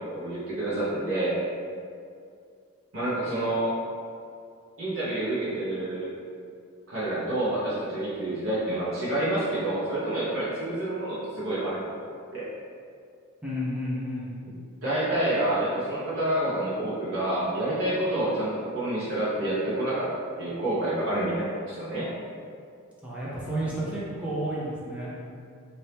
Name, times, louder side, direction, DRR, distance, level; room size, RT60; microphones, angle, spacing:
voice 1, 0.1-1.4 2.9-3.7 4.8-6.1 6.9-12.5 14.8-20.1 20.4-22.0, right 1 dB, 70° right, -10 dB, 0.9 m, -28 dB
voice 2, 13.4-14.3 23.0-25.1, equal, 5° right, -8 dB, 0.6 m, -31 dB
2.8 x 2.7 x 3.3 m, 2.3 s
head